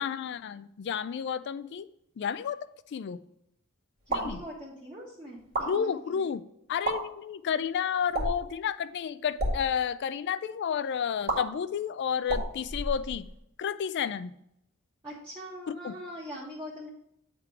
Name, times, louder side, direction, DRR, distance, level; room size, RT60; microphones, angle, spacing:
voice 1, 0.0-1.9 2.2-2.6 2.9-3.2 4.1-4.4 5.7-6.4 6.7-13.3 13.6-14.3 15.8-15.9, left 7 dB, 50° left, 14 dB, 0.3 m, -31 dB
sound 1, 4.0-4.4 5.4-5.7 6.7-7.0 8.1-8.5 9.3-9.6 11.3-11.4 12.2-13.4, right 2 dB, 45° right, 1.8 m, -31 dB
voice 2, 4.1-6.3 15.0-16.9, equal, 20° right, -5 dB, 1.2 m, -42 dB
8.2 x 3.7 x 4.6 m, 0.78 s
head